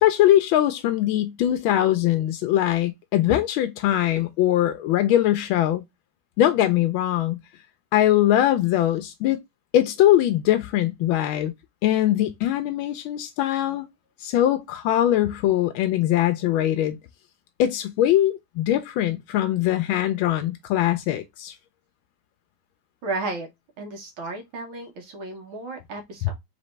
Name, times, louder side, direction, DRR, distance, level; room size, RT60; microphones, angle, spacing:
voice 1, 0.0-5.8 6.4-7.4 7.9-9.4 9.7-11.5 11.8-13.8 14.2-17.0 17.6-21.6, left 12 dB, 85° left, 1.4 m, -21 dB
voice 2, 23.0-23.5 23.8-26.3, right 3 dB, 85° right, 2.0 m, -33 dB
4.1 x 3.4 x 3.1 m
omnidirectional pair, 2.2 m